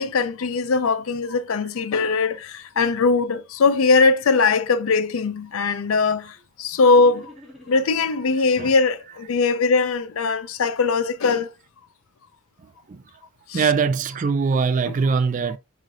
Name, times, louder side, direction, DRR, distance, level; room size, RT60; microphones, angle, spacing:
voice 1, 0.0-7.3 7.7-11.5 13.5-13.6, left 4 dB, 80° left, 0.4 m, -20 dB
sound 1, 6.8-8.2 8.8-9.7, left 2 dB, ahead, 1.5 m, -47 dB
voice 2, 13.5-15.6, right 5 dB, 35° right, 0.3 m, -22 dB
4.8 x 3.1 x 2.5 m
head